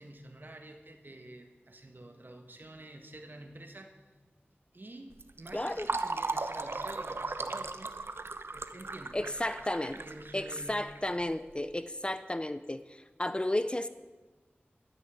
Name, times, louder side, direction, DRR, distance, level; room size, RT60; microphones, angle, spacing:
voice 1, 0.0-4.0 4.7-7.9 8.5-9.2 9.9-10.9, right 1 dB, 50° right, 4 dB, 1.7 m, -49 dB
Fill (with liquid), 5.1-11.5, right 3 dB, 70° right, 0.9 m, -37 dB
voice 2, 5.5-5.9 9.1-10.0 10.3-13.9, left 1 dB, 25° left, 12 dB, 0.6 m, -33 dB
12.5 x 10.5 x 9.5 m, 1.3 s
wide cardioid pair, 65°, 4 cm